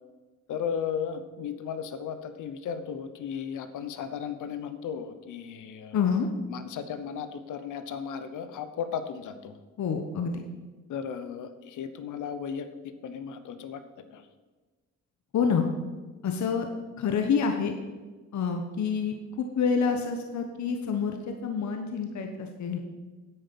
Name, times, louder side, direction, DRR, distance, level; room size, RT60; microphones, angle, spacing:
voice 1, 0.5-6.0 6.5-9.6 10.9-14.2, left 7 dB, 85° left, 11 dB, 0.9 m, -35 dB
voice 2, 5.9-6.3 9.8-10.4 15.3-15.6 16.2-16.7 17.0-17.7 18.3-21.2 21.4-22.8, left 6 dB, 65° left, 5 dB, 1.1 m, -27 dB
10.0 x 8.4 x 5.3 m, 1.3 s
cardioid pair, 95°, 30 cm